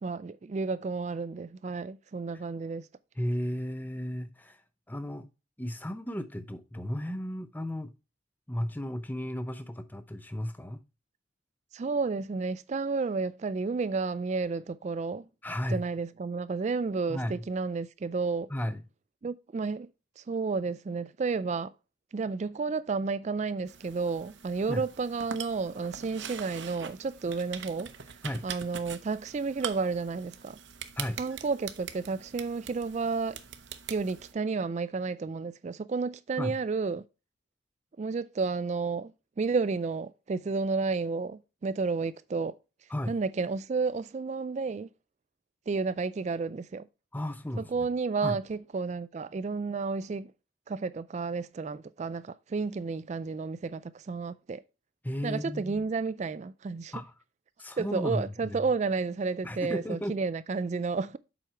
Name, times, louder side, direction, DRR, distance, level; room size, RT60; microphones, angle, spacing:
voice 1, 0.0-2.9 11.7-15.3 15.7-18.5 19.2-19.9 20.2-21.7 22.1-28.0 28.4-30.6 31.2-33.4 33.9-37.0 38.0-42.6 43.1-44.9 45.7-46.9 47.6-50.3 50.7-54.6 55.2-56.9 57.8-61.2, right 4 dB, 35° right, 0.3 m, -31 dB
voice 2, 3.2-4.6 4.9-5.3 5.6-7.9 8.5-10.8 15.4-15.8 17.1-17.4 18.5-18.8 24.7-24.8 28.2-28.5 31.0-31.2 36.4-36.6 42.9-43.2 47.1-47.9 48.2-48.4 55.0-55.8 56.9-57.1 57.6-58.6 59.4-60.1, left 1 dB, 10° left, 0.6 m, -34 dB
sound 1, 23.7-34.3, right 8 dB, 60° right, 0.7 m, -43 dB
7.6 x 5.1 x 4.3 m
head